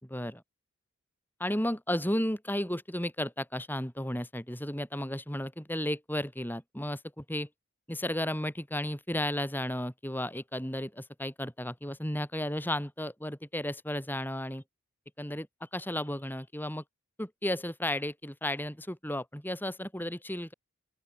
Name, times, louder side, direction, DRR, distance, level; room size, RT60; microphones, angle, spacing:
voice 1, 0.0-0.4 1.4-7.5 7.9-14.6 15.2-16.8 17.2-20.5, left 1 dB, 10° left, 5.3 m, -33 dB
open air
head